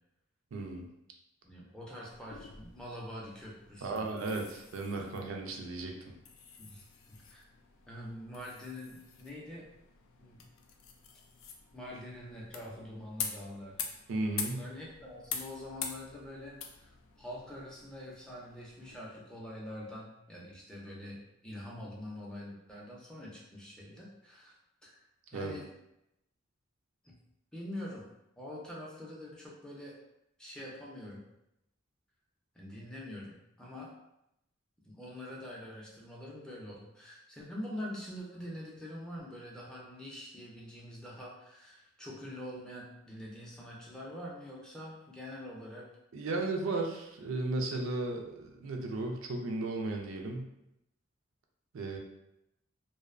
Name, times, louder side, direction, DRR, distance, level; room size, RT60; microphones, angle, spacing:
voice 1, 0.5-0.9 3.8-6.2 14.1-14.6 25.3-25.6 46.1-50.5 51.7-52.0, right 2 dB, 80° right, 2 dB, 0.4 m, -35 dB
voice 2, 1.4-4.1 6.6-7.4 7.9-9.7 10.2-10.5 11.7-13.8 14.4-24.5 24.8-25.0 25.3-25.7 27.0-27.2 27.5-28.1 28.4-30.0 30.4-31.2 32.5-33.9 34.8-45.9, left 1 dB, 5° left, -5 dB, 0.4 m, -45 dB
sound 1, 2.1-19.0, left 6 dB, 85° left, 0.3 m, -46 dB
2.5 x 2.0 x 2.4 m, 0.85 s
head